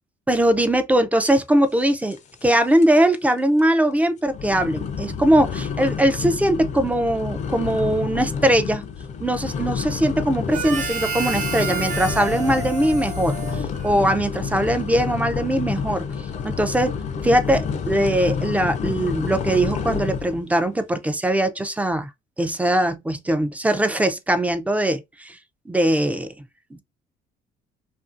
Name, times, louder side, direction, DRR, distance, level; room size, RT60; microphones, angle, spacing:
voice 1, 0.3-8.8 9.2-16.9 17.2-22.1 22.4-25.4 25.7-26.3 26.7-26.8, right 1 dB, 10° right, 0.4 m, -21 dB
sound 1, 2.1-2.5 2.8-3.2 3.6-3.7 4.3-20.4, left 6 dB, 45° left, 0.5 m, -29 dB
Harmonica, 10.5-14.3, right 5 dB, 45° right, 0.7 m, -30 dB
2.8 x 2.6 x 2.4 m
cardioid pair, 110°, 17 cm